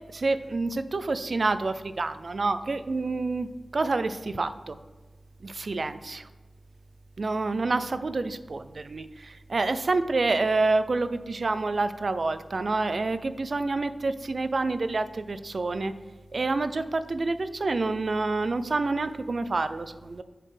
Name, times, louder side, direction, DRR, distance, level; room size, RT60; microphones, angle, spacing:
voice 1, 0.1-4.8 5.4-6.3 7.2-15.9 16.3-20.2, right 3 dB, 60° right, 12 dB, 0.4 m, -28 dB
7.3 x 6.5 x 3.3 m, 1.2 s
wide cardioid pair, 90°, 0 cm